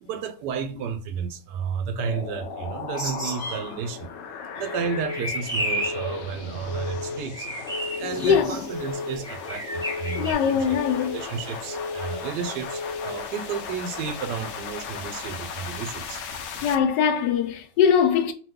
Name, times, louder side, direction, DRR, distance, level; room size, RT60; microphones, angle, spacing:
voice 1, 0.0-4.1 4.6-7.6 8.0-16.2, right 6 dB, 80° right, 1.2 m, -32 dB
sound 1, 2.0-16.8, left 6 dB, 65° left, 1.0 m, -37 dB
sound 2, 2.9-3.7 4.8-6.1 7.3-8.7 9.2-10.3, equal, 5° right, 0.6 m, -32 dB
Telephone, 4.7-5.2 5.7-6.2 6.7-7.2 7.7-8.2 8.7-9.2 9.7-10.2 10.7-11.2 11.7-12.2 12.7-13.2, left 3 dB, 45° right, 1.1 m, -34 dB
voice 2, 8.2-8.6 10.1-11.2 16.6-18.3, left 7 dB, 85° left, 1.3 m, -21 dB
3.0 x 2.2 x 3.5 m
omnidirectional pair, 1.8 m